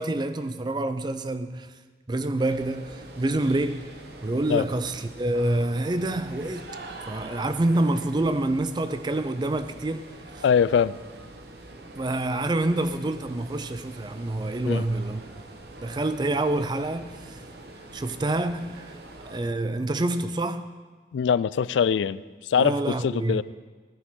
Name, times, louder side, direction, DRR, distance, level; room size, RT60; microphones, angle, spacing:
voice 1, 0.0-1.7 2.1-3.9 4.2-6.7 7.1-10.1 10.4-10.5 12.0-15.2 15.8-17.4 17.9-19.0 19.2-20.7 22.6-23.4, right 2 dB, 25° right, 0.4 m, -27 dB
sound 1, 2.4-19.4, right 2 dB, 60° right, 1.1 m, -44 dB
voice 2, 10.4-11.0 14.7-14.8 21.1-23.4, left 7 dB, 85° left, 0.3 m, -23 dB
15.0 x 10.0 x 3.7 m
head